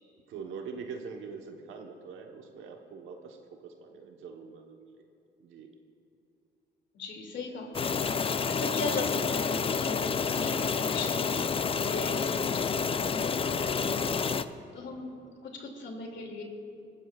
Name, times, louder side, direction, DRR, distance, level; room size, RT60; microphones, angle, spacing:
voice 1, 0.3-4.9 5.4-5.7, right 5 dB, 85° right, 3 dB, 1.1 m, -43 dB
voice 2, 6.9-14.2 14.7-15.1 15.4-16.4, left 3 dB, 65° left, 2 dB, 2.4 m, -39 dB
sound 1, 7.7-14.4, left 5 dB, 30° left, 0.4 m, -29 dB
23.0 x 13.5 x 2.4 m, 2.7 s
cardioid pair, 90°, 20 cm